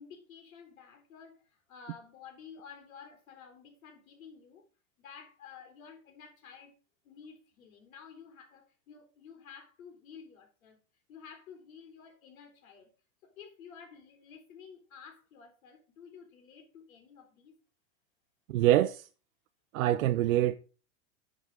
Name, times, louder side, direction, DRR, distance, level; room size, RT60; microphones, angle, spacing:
voice 1, 0.0-4.7 5.0-6.7 7.0-10.8 11.1-12.9 13.2-17.5, left 6 dB, 85° left, 3.8 m, -52 dB
voice 2, 18.5-19.1 19.7-20.5, right 13 dB, 85° right, 0.7 m, -25 dB
10.5 x 5.0 x 5.3 m
supercardioid pair, 165°, 41 cm